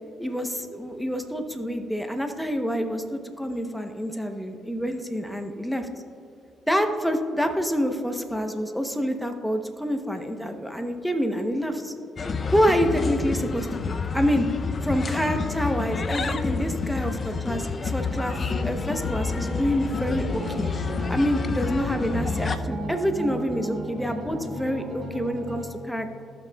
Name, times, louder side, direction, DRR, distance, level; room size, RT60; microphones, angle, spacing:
voice 1, 0.2-5.9 6.7-11.9 12.5-14.5 14.8-18.4 18.6-20.7 21.1-26.2, equal, ahead, 6 dB, 0.7 m, -27 dB
sound 1, 12.2-22.6, left 4 dB, 40° left, 0.5 m, -29 dB
sound 2, 18.3-25.7, right 1 dB, 55° right, 2.0 m, -35 dB
16.5 x 6.0 x 2.2 m, 2.6 s
cardioid pair, 90°, 0 cm